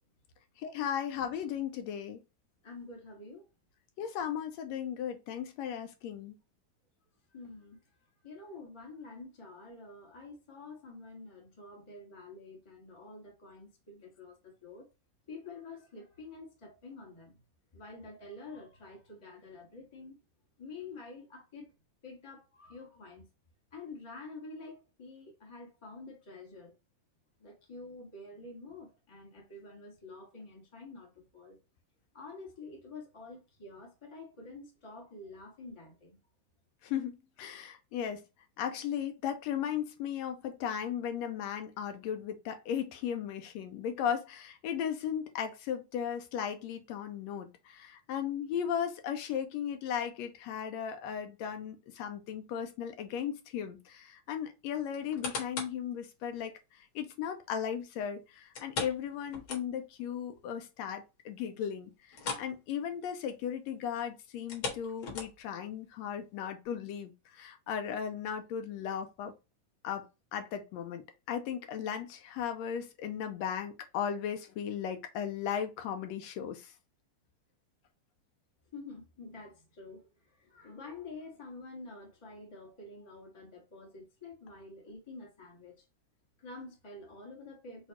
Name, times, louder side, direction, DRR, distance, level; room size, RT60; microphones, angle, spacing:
voice 1, 0.6-2.2 4.0-6.4 36.8-38.2 38.6-69.3 69.8-70.0 70.3-76.7, left 8 dB, 80° left, 1.6 m, -36 dB
voice 2, 2.6-3.4 7.3-7.8 8.2-14.9 15.3-17.4 17.7-20.1 20.6-21.7 22.0-23.3 23.7-26.7 27.4-31.6 32.1-36.2 78.7-80.0 80.3-85.8 86.4-87.9, left 3 dB, 25° left, 0.6 m, -48 dB
sound 1, 54.9-55.8 56.4-56.5 58.5-60.0 60.3-60.4 60.9-61.0 62.1-62.6 62.8-63.0 64.4-65.6 66.2-66.3, left 4 dB, 55° left, 2.3 m, -39 dB
6.2 x 2.4 x 3.0 m
omnidirectional pair, 3.6 m